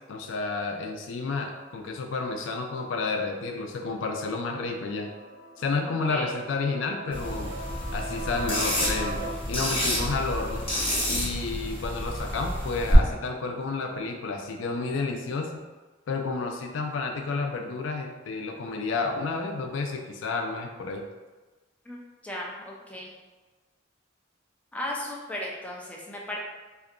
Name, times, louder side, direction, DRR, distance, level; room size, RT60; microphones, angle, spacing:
voice 1, 0.1-5.1 5.6-7.5 7.9-10.7 11.1-15.6 16.1-21.0, left 3 dB, 80° left, 3 dB, 0.4 m, -31 dB
sound 1, 3.7-9.3, right 1 dB, 40° right, 0.7 m, -40 dB
voice 2, 5.9-6.3 21.9-22.0 22.2-23.1 24.7-26.4, left 1 dB, 5° left, -3 dB, 0.4 m, -36 dB
sound 2, 7.1-12.9, equal, 30° left, 0.9 m, -29 dB
2.7 x 2.2 x 2.4 m, 1.3 s
head